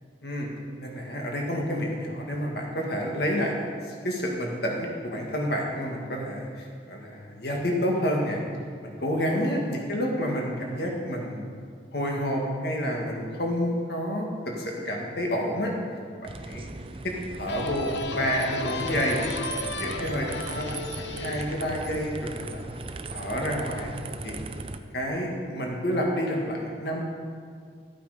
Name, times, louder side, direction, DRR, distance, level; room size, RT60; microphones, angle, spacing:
voice 1, 0.8-8.4 8.8-11.4 11.9-15.7 16.2-16.7 17.0-19.2 19.6-22.6 23.1-23.9 24.2-24.4 24.9-27.0, equal, 65° left, -1 dB, 1.9 m, -29 dB
sound 1, 16.2-24.8, right 3 dB, 30° right, 0.5 m, -38 dB
sound 2, 17.5-22.9, left 3 dB, 85° left, 0.8 m, -35 dB
12.5 x 8.4 x 5.0 m, 2.1 s
head